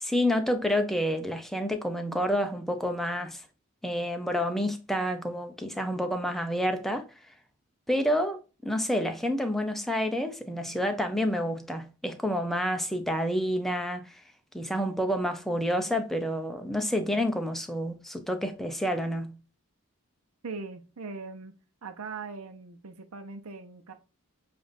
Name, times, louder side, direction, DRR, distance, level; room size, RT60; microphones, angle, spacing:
voice 1, 0.0-3.4 3.8-7.1 7.9-14.2 14.5-19.4, equal, ahead, 0.6 m, -29 dB
voice 2, 20.4-21.5 21.8-23.9, right 4 dB, 75° right, 0.7 m, -40 dB
6.9 x 2.5 x 2.5 m
head